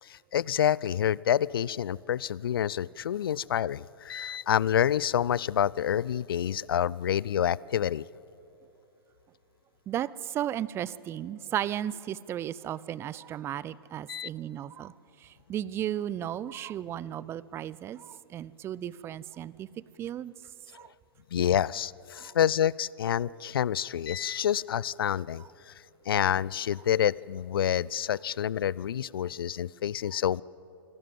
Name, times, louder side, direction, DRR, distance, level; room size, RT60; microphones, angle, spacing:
voice 1, 0.0-8.0 14.1-14.3 21.3-25.7 26.1-30.4, left 10 dB, 65° left, 23 dB, 0.4 m, -28 dB
voice 2, 9.9-14.9 15.2-19.7 20.0-20.3 20.7-20.9 22.2-22.3, right 11 dB, 20° right, 20 dB, 0.4 m, -35 dB
26.5 x 12.5 x 9.1 m, 3.0 s
figure-of-eight pair, 110°, 13 cm